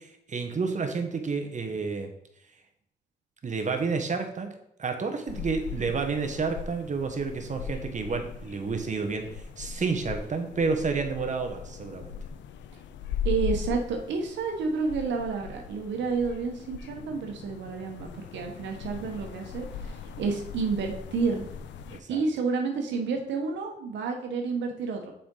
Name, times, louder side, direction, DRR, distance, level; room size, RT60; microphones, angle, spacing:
voice 1, 0.0-2.1 3.4-4.5 4.8-12.1 21.9-22.2, right 4 dB, 40° right, 5 dB, 1.2 m, -30 dB
sound 1, 5.3-22.0, left 6 dB, 90° left, 0.5 m, -39 dB
voice 2, 13.2-21.5 22.1-25.1, right 4 dB, 85° right, 2 dB, 1.1 m, -30 dB
6.8 x 5.0 x 3.9 m, 0.75 s
cardioid pair, 80°, 18 cm